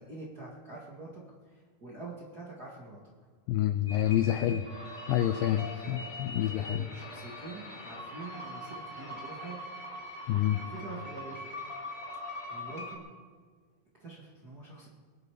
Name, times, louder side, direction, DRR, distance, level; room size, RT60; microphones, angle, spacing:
voice 1, 0.0-3.0 4.2-4.6 5.6-9.6 10.2-11.5 12.5-13.0 14.0-14.9, right 2 dB, 35° right, -5 dB, 1.5 m, -46 dB
voice 2, 3.5-4.6 5.1-6.8 10.3-10.6, left 12 dB, 85° left, 9 dB, 2.0 m, -28 dB
sound 1, 3.9-13.0, left 1 dB, 20° left, 1.2 m, -42 dB
22.5 x 11.5 x 4.9 m, 1.5 s
omnidirectional pair, 4.8 m